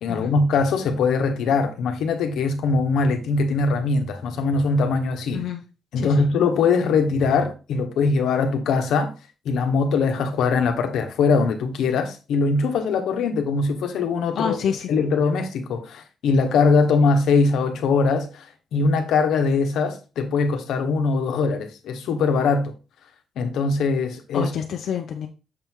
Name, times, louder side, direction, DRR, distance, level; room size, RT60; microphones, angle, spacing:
voice 1, 0.0-5.4 5.9-9.1 9.4-14.6 14.9-22.7 23.4-24.5, left 4 dB, 85° left, 1.1 m, -21 dB
voice 2, 5.3-5.6 6.0-6.3 14.3-15.1 24.3-25.3, left 7 dB, 60° left, 0.7 m, -28 dB
6.8 x 4.6 x 3.7 m
cardioid pair, 160°, 0 cm